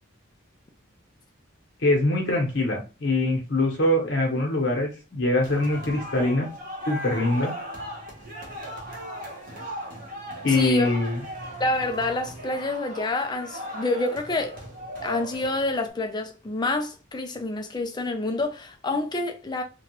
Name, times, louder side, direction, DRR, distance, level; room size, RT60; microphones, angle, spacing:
voice 1, 1.8-6.5 6.9-7.5 10.4-11.2, left 2 dB, 60° left, 0.9 m, -23 dB
sound 1, 5.4-15.9, equal, 40° right, 0.9 m, -37 dB
voice 2, 10.5-10.9 11.6-14.6 15.0-19.6, left 2 dB, 20° left, 0.3 m, -28 dB
3.0 x 2.3 x 2.9 m
head